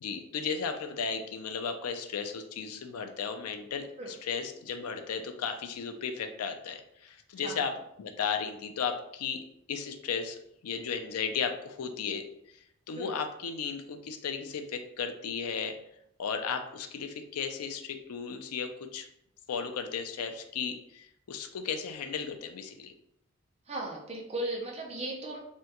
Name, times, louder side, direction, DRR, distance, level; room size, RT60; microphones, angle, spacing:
voice 1, 0.0-12.3 12.9-15.8 16.2-19.1 19.5-22.9, left 6 dB, 85° left, 6 dB, 0.4 m, -35 dB
voice 2, 23.7-25.4, right 1 dB, 30° right, -1 dB, 0.5 m, -36 dB
3.5 x 2.2 x 2.8 m, 0.76 s
head